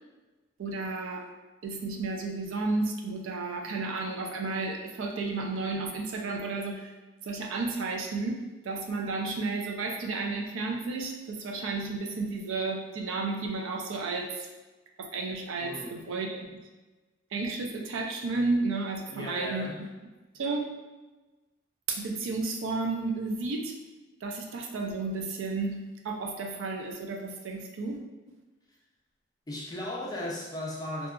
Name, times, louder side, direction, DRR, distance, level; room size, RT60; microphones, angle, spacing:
voice 1, 0.6-1.3 1.6-6.9 7.2-14.5 15.0-16.4 17.3-19.7 20.3-20.6 21.9-23.7 24.2-28.1, right 3 dB, 80° right, 1 dB, 0.4 m, -32 dB
voice 2, 15.6-16.0 19.1-19.8 29.5-31.1, left 1 dB, 20° left, -3 dB, 0.4 m, -36 dB
2.7 x 2.3 x 2.3 m, 1.2 s
head